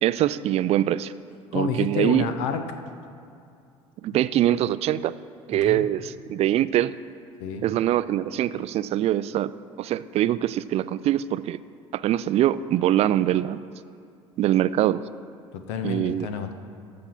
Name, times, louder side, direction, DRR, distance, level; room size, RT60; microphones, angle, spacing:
voice 1, 0.0-1.1 1.5-2.2 4.0-5.1 5.5-7.0 7.6-9.5 9.8-11.6 11.9-13.6 14.4-15.0 15.8-16.3, right 12 dB, 45° right, 16 dB, 0.4 m, -23 dB
voice 2, 1.5-2.6 5.5-5.9 7.4-7.7 15.5-16.5, left 6 dB, 65° left, 7 dB, 0.8 m, -29 dB
14.0 x 5.2 x 5.9 m, 2.4 s
figure-of-eight pair, 65°, 15 cm